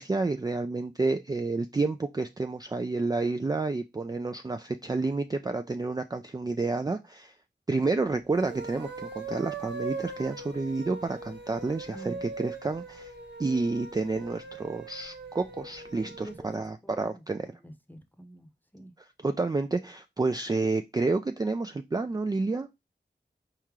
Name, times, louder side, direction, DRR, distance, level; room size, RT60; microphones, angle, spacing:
voice 1, 0.0-7.3 7.7-13.1 13.4-17.5 19.2-22.8, right 3 dB, 20° right, 0.3 m, -30 dB
sound 1, 8.2-16.4, right 4 dB, 70° right, 0.9 m, -40 dB
voice 2, 11.9-12.3 16.2-16.6 17.0-18.9, right 1 dB, 10° left, 0.8 m, -46 dB
4.4 x 3.7 x 3.1 m
wide cardioid pair, 45°, 18 cm